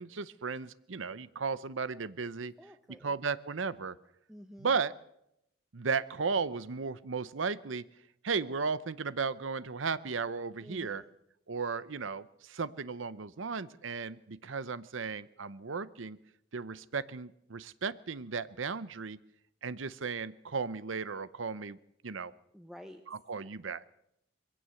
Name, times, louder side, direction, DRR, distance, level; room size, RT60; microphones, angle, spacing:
voice 1, 0.0-2.5 3.0-4.0 4.6-4.9 5.7-7.9 8.2-11.0 11.5-16.2 16.5-19.2 19.6-21.8 22.0-22.3 23.1-23.9, right 5 dB, 85° right, 17 dB, 0.8 m, -35 dB
voice 2, 2.6-3.1 4.3-4.8 10.6-11.1 22.5-23.0, equal, ahead, 5 dB, 1.0 m, -50 dB
22.0 x 16.5 x 7.7 m, 0.79 s
head